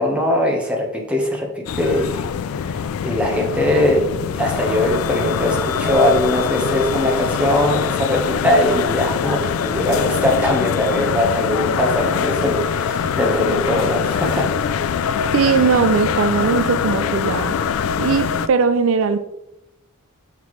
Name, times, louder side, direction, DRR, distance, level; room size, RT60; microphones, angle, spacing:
voice 1, 0.0-2.3 2.6-14.5, left 1 dB, 5° right, -1 dB, 1.1 m, -21 dB
sound 1, 1.7-18.5, left 7 dB, 75° left, 0.3 m, -23 dB
voice 2, 15.3-17.5 18.0-19.2, right 5 dB, 70° right, 11 dB, 0.4 m, -19 dB
6.0 x 5.5 x 3.2 m, 0.89 s
head